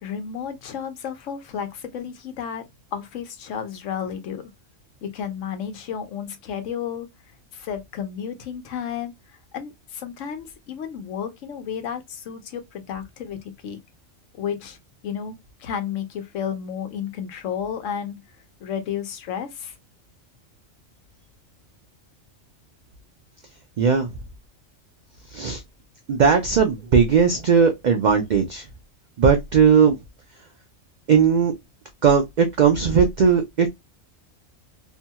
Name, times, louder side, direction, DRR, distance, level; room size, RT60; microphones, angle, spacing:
voice 1, 0.0-2.6 2.9-4.5 5.0-7.1 7.5-9.1 9.5-13.8 14.3-14.8 15.0-18.2 18.6-19.7, left 8 dB, 75° left, 1.0 m, -32 dB
voice 2, 23.8-24.1 25.3-25.6 26.1-28.6 29.2-30.0 31.1-31.5 32.0-33.7, right 6 dB, 75° right, 0.4 m, -18 dB
2.7 x 2.2 x 2.7 m
omnidirectional pair, 1.3 m